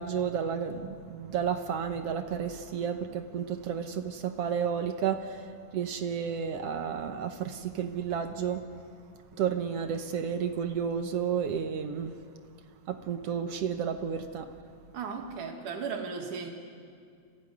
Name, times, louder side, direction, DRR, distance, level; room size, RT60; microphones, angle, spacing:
voice 1, 0.0-8.7 9.4-12.1 12.9-14.5, right 7 dB, 65° right, 7 dB, 1.8 m, -32 dB
voice 2, 14.9-16.5, right 5 dB, 85° right, 2 dB, 3.4 m, -36 dB
25.5 x 16.0 x 9.8 m, 2.3 s
omnidirectional pair, 3.5 m